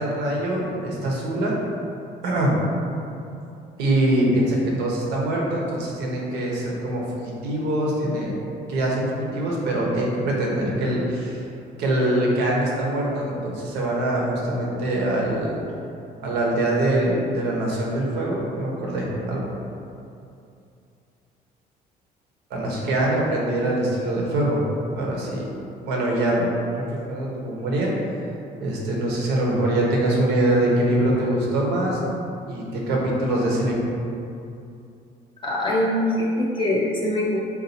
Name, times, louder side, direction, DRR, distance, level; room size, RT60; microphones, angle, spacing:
voice 1, 0.0-1.5 2.2-2.6 3.8-8.3 8.7-11.4 11.8-15.6 16.2-19.4 22.5-24.6 24.9-25.4 25.8-26.5 26.8-27.9 28.6-32.0 32.5-33.8, right 1 dB, 85° right, -3 dB, 0.9 m, -23 dB
voice 2, 35.4-37.4, left 1 dB, 30° left, -4 dB, 0.4 m, -23 dB
4.0 x 2.5 x 4.1 m, 2.6 s
cardioid pair, 110°, 17 cm